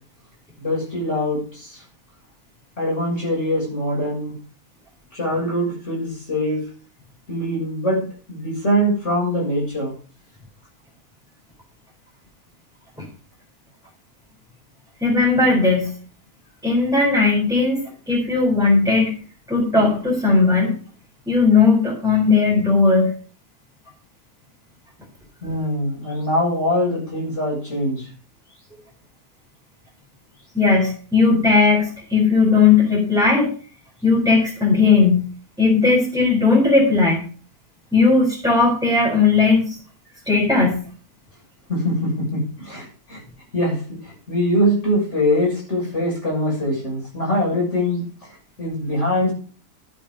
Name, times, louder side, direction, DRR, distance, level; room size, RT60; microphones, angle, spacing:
voice 1, 0.6-1.8 2.8-4.4 5.1-6.6 7.3-9.9 25.4-28.1 41.7-43.2 43.5-48.0 48.6-49.3, equal, 50° left, -3 dB, 7.0 m, -23 dB
voice 2, 15.0-15.9 16.6-17.8 18.1-19.1 19.5-20.8 21.3-23.1 30.5-33.5 34.0-35.3 35.6-37.2 37.9-39.8 40.3-40.8, left 4 dB, ahead, -4 dB, 4.1 m, -17 dB
12.0 x 8.5 x 5.2 m, 0.40 s
omnidirectional pair, 1.6 m